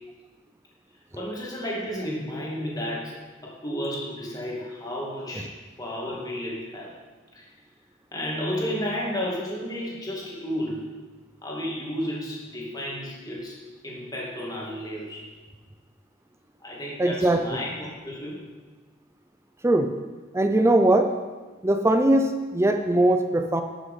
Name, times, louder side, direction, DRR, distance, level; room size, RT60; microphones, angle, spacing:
voice 1, 1.1-5.5 5.8-6.9 7.3-7.5 8.1-10.9 11.4-15.3 16.6-18.5, equal, 20° left, -4 dB, 2.3 m, -32 dB
voice 2, 17.0-17.6 19.6-19.9 20.3-21.1 21.6-23.6, right 1 dB, 15° right, 6 dB, 0.5 m, -20 dB
11.5 x 6.5 x 5.6 m, 1.3 s
head